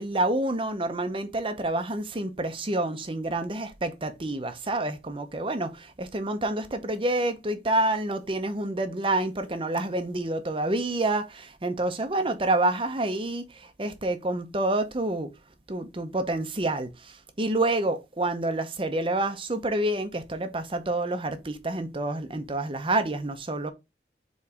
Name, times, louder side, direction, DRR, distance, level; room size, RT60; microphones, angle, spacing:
voice 1, 0.0-15.3 15.7-23.7, right 2 dB, 30° right, 0.8 m, -28 dB
4.8 x 4.1 x 4.8 m
head